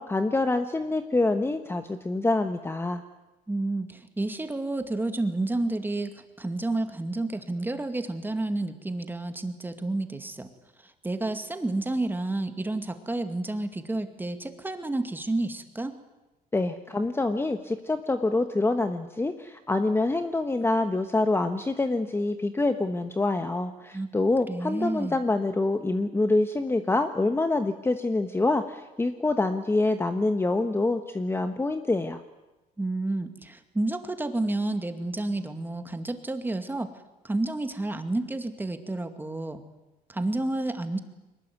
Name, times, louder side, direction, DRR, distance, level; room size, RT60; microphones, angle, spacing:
voice 1, 0.0-3.0 16.5-32.2, left 2 dB, 15° left, 8 dB, 1.2 m, -26 dB
voice 2, 3.5-10.5 10.8-16.0 23.9-24.1 24.5-25.2 32.8-36.9 37.2-39.6 40.1-41.0, right 2 dB, 10° right, 8 dB, 2.2 m, -30 dB
22.5 x 20.0 x 9.5 m, 1.0 s
cardioid pair, 110°, 17 cm